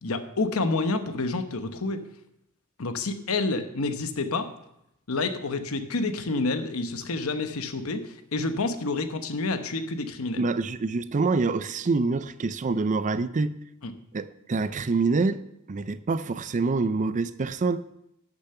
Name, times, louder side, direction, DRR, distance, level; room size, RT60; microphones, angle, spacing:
voice 1, 0.0-2.0 2.8-4.5 5.1-10.4 13.8-13.9, left 3 dB, 70° left, 1.0 m, -28 dB
voice 2, 10.4-13.5 14.1-15.4 15.7-17.9, right 3 dB, 35° right, 0.4 m, -26 dB
11.5 x 6.8 x 6.7 m
head